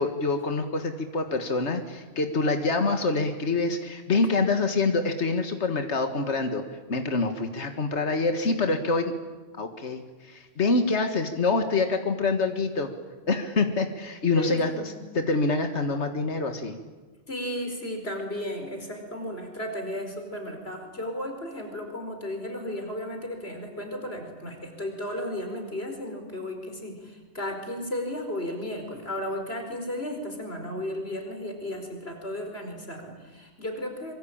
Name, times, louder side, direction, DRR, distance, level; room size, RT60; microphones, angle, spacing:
voice 1, 0.0-6.6 6.9-9.1 9.6-12.9 13.3-14.7 15.2-16.8, left 3 dB, 80° left, 6 dB, 2.0 m, -26 dB
voice 2, 14.3-14.9 17.3-34.1, left 1 dB, 65° left, 4 dB, 5.1 m, -34 dB
25.0 x 24.0 x 8.8 m, 1.3 s
omnidirectional pair, 1.2 m